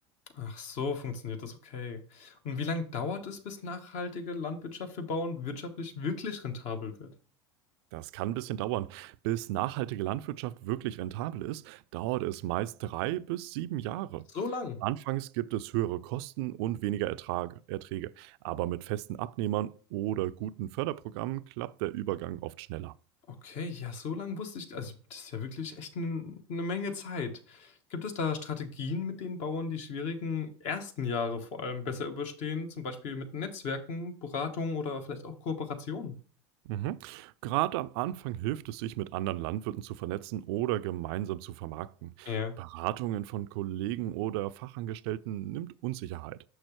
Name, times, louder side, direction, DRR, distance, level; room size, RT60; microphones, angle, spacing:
voice 1, 0.3-7.1 14.3-14.8 23.4-36.1 42.3-42.5, left 4 dB, 55° left, 1.2 m, -35 dB
voice 2, 7.9-14.3 14.8-22.9 36.6-46.4, right 15 dB, 65° right, 0.4 m, -34 dB
6.3 x 6.0 x 3.1 m
hypercardioid pair, 85°, 15 cm